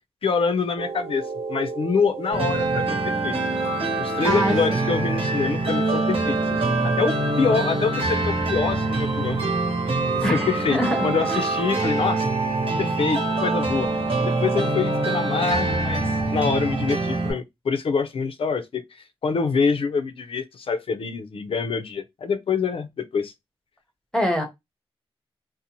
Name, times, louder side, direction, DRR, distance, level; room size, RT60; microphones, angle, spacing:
voice 1, 0.2-1.2 1.5-3.4 4.0-9.4 10.1-12.3 12.8-13.9 14.2-23.3, left 5 dB, 65° left, 0.5 m, -25 dB
sound 1, 0.8-15.8, right 4 dB, 80° right, 0.4 m, -32 dB
sound 2, 2.3-17.3, right 2 dB, 65° right, 1.0 m, -25 dB
voice 2, 4.2-4.9 10.2-11.5 24.1-24.4, equal, 5° left, 0.6 m, -25 dB
2.6 x 2.0 x 2.8 m
wide cardioid pair, 135°, 10 cm